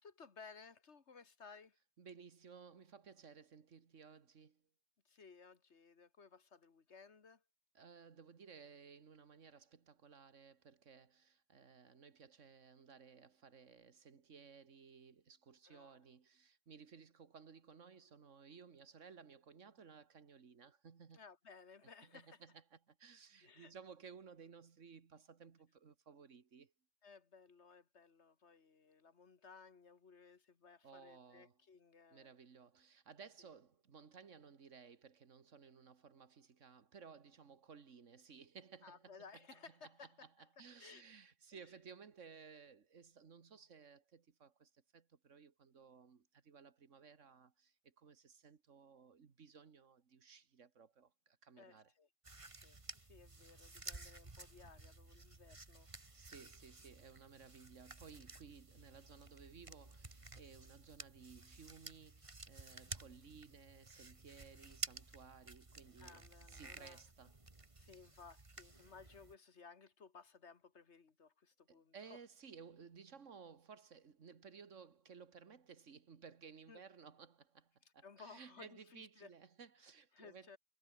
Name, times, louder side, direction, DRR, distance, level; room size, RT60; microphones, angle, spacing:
voice 1, 0.0-1.8 5.1-7.4 15.7-16.0 21.1-22.4 23.4-23.7 27.0-32.3 33.4-33.5 38.8-40.5 40.8-41.0 41.5-41.7 51.6-52.1 52.6-55.9 66.0-67.0 67.8-72.2 76.7-76.8 77.8-79.3 80.1-80.6, left 5 dB, 65° left, 2.1 m, -59 dB
voice 2, 2.0-4.6 7.7-21.2 22.0-26.7 30.8-31.6 32.1-51.9 56.1-67.4 71.7-80.5, right 6 dB, 85° right, 2.0 m, -58 dB
sound 1, 52.2-69.3, right 2 dB, 25° right, 1.9 m, -53 dB
omnidirectional pair, 1.2 m